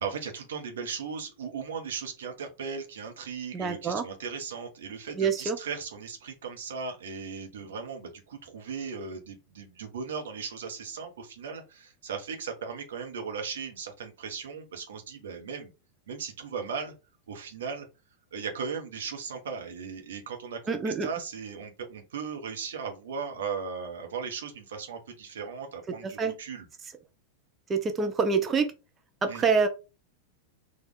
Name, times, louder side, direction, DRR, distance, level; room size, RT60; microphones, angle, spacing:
voice 1, 0.0-15.7 16.1-16.9 17.3-17.9 18.3-26.6 29.3-29.5, right 6 dB, 65° right, 4 dB, 1.1 m, -37 dB
voice 2, 3.5-4.1 5.2-5.6 20.7-21.1 26.0-26.4 27.7-28.7 29.2-29.7, right 5 dB, 20° right, 6 dB, 0.9 m, -26 dB
4.3 x 2.7 x 3.7 m, 0.29 s
figure-of-eight pair, 90°, 0 cm